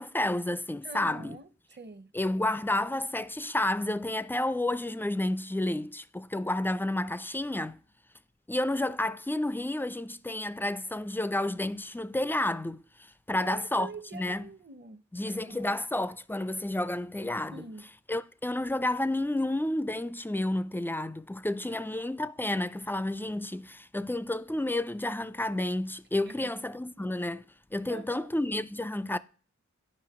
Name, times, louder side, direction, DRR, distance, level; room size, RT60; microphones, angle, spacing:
voice 1, 0.0-1.4 2.1-7.8 8.5-12.8 13.3-14.5 15.1-17.7 18.1-27.4 27.7-29.2, left 1 dB, 5° left, 0.3 m, -30 dB
voice 2, 0.8-2.1 13.3-15.8 17.5-17.9 21.7-21.8 26.3-26.5 27.9-28.3, right 3 dB, 35° right, 0.7 m, -45 dB
10.5 x 5.3 x 3.5 m
wide cardioid pair, 45°, 30 cm